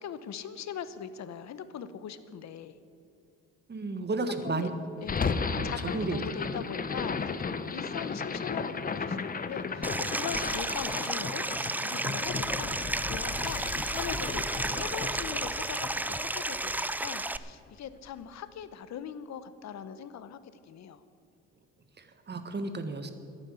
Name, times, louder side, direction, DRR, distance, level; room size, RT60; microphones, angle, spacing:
voice 1, 0.0-2.8 4.4-4.7 5.0-20.4 20.7-21.0, left 8 dB, 65° left, 13 dB, 0.9 m, -41 dB
voice 2, 3.7-4.7 5.6-6.2 22.0-23.1, right 3 dB, 35° right, 8 dB, 1.4 m, -33 dB
sound 1, 5.0-17.2, left 5 dB, 30° left, 0.8 m, -35 dB
Stream, 9.8-17.4, right 2 dB, 5° right, 0.4 m, -32 dB
11.5 x 9.9 x 8.4 m, 2.6 s
cardioid pair, 90°, 30 cm